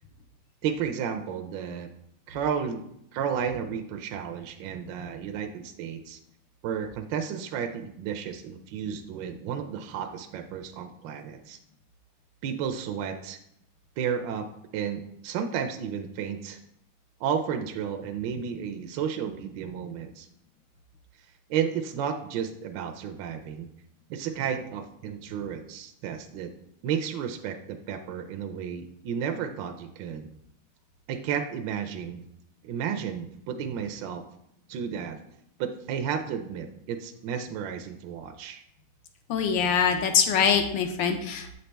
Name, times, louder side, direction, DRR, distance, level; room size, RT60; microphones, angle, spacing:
voice 1, 0.6-1.9 2.3-2.8 3.1-6.2 6.6-11.6 12.4-13.4 14.0-14.5 14.7-16.6 17.2-20.3 21.5-23.7 24.1-26.5 26.8-30.3 31.1-32.2 32.6-34.2 34.7-35.2 35.6-38.6, right 7 dB, 75° right, 5 dB, 1.1 m, -32 dB
voice 2, 39.3-41.5, left 7 dB, 75° left, 6 dB, 1.2 m, -23 dB
7.8 x 4.1 x 3.3 m, 0.76 s
omnidirectional pair, 2.3 m